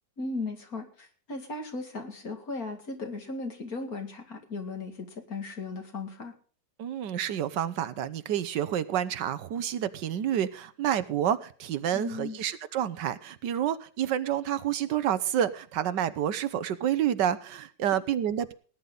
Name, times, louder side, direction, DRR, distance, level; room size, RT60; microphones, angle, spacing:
voice 1, 0.2-6.3 11.9-12.4, left 3 dB, 55° left, 4 dB, 2.7 m, -37 dB
voice 2, 6.8-18.5, right 10 dB, 85° right, 14 dB, 1.5 m, -29 dB
18.5 x 10.0 x 3.9 m, 0.42 s
omnidirectional pair, 1.9 m